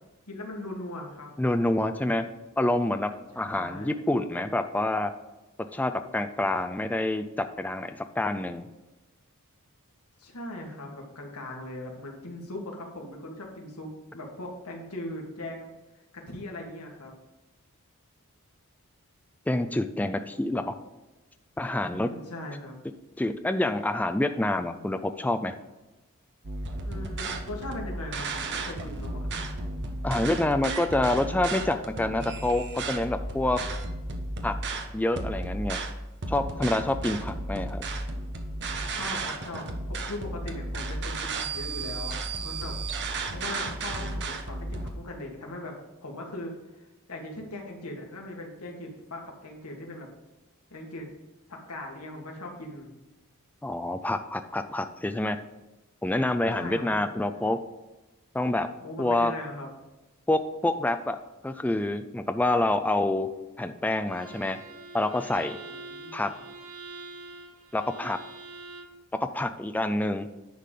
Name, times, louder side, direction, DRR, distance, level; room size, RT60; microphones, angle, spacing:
voice 1, 0.3-1.3 3.5-4.0 10.2-15.7 16.1-17.2 21.9-22.8 26.8-29.2 38.9-42.1 42.4-42.8 43.3-45.8 46.0-50.1 50.7-51.1 51.5-52.9 56.5-57.4 58.8-59.7 65.6-66.5, left 1 dB, 80° left, 0 dB, 1.8 m, -39 dB
voice 2, 1.4-2.3 2.6-3.1 3.4-5.1 5.7-8.7 19.5-20.7 21.6-22.1 23.2-25.5 30.0-33.6 34.4-34.5 34.9-35.8 36.3-37.8 53.6-55.4 56.0-57.6 58.3-58.7 59.0-59.3 60.3-61.2 61.4-63.3 63.6-64.6 64.9-65.6 66.1-66.3 67.7-68.2 69.3-70.3, left 1 dB, 5° left, 8 dB, 0.3 m, -27 dB
sound 1, 26.4-44.9, right 2 dB, 55° right, 1.0 m, -34 dB
Bowed string instrument, 64.1-69.0, right 3 dB, 70° right, 1.9 m, -45 dB
10.0 x 3.8 x 6.6 m, 1.1 s
head